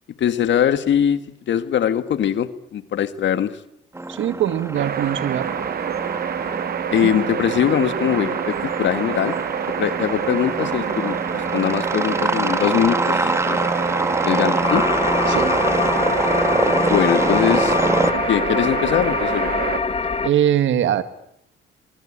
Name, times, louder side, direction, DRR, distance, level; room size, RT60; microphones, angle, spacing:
voice 1, 0.2-1.2 1.5-3.5 6.9-9.4 9.8-13.7 14.2-14.8 16.9-17.8 18.3-19.5, left 9 dB, 65° left, 11 dB, 1.6 m, -21 dB
sound 1, 3.9-18.1, right 2 dB, 15° right, 2.2 m, -25 dB
voice 2, 4.1-5.5 7.0-7.1 15.3-15.7 20.2-21.0, right 10 dB, 75° right, 11 dB, 1.8 m, -22 dB
sound 2, 4.7-19.8, right 9 dB, 50° right, 1.0 m, -27 dB
sound 3, 14.6-20.3, left 4 dB, 30° left, 1.9 m, -23 dB
23.5 x 23.0 x 8.8 m, 0.74 s
cardioid pair, 90°, 20 cm